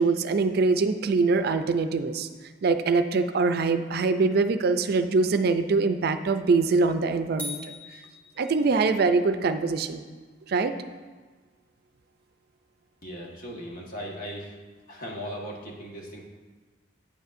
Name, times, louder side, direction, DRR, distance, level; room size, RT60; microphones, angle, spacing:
voice 1, 0.0-2.3 2.6-7.6 8.4-10.0 10.5-10.7, right 4 dB, 60° right, 9 dB, 0.4 m, -23 dB
sound 1, 7.4-9.0, left 1 dB, 10° left, 1.5 m, -40 dB
voice 2, 13.0-14.6 14.9-16.3, equal, 50° left, -2 dB, 1.4 m, -38 dB
8.8 x 8.0 x 2.5 m, 1.4 s
head